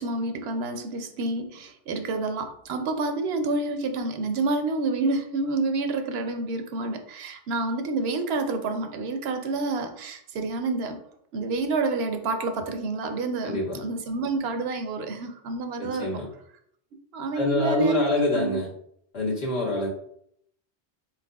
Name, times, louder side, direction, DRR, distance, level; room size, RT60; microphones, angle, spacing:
voice 1, 0.0-11.0 11.3-16.2 17.1-18.6, right 3 dB, 75° right, 6 dB, 0.8 m, -28 dB
voice 2, 13.4-13.8 15.8-16.3 17.3-18.7 19.1-19.9, left 1 dB, 70° left, -5 dB, 1.6 m, -25 dB
4.0 x 4.0 x 2.3 m, 0.69 s
omnidirectional pair, 1.1 m